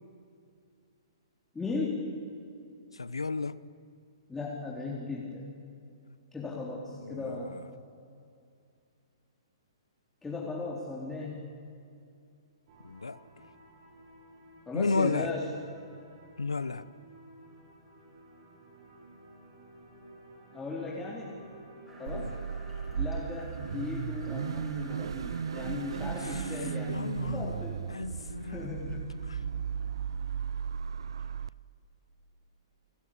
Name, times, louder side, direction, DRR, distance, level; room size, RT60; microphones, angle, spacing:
voice 1, 1.5-2.0 4.3-5.4 6.3-7.6 10.2-11.4 14.7-15.5 20.5-21.3 22.0-22.3 23.0-27.8 28.4-29.2, left 3 dB, 10° left, 3.7 m, -37 dB
voice 2, 2.9-3.6 7.0-7.6 12.8-13.2 14.7-15.3 16.4-16.9 22.1-22.4 26.2-26.6 26.9-28.7 29.2-29.4, left 3 dB, 90° left, 0.8 m, -33 dB
sound 1, 12.7-23.2, right 1 dB, 50° right, 7.0 m, -53 dB
sound 2, 21.9-26.9, right 1 dB, 10° right, 7.5 m, -53 dB
Car / Idling / Accelerating revving vroom, 22.1-31.5, right 7 dB, 70° right, 0.5 m, -35 dB
29.5 x 15.0 x 8.7 m
hypercardioid pair, 125°, 3 cm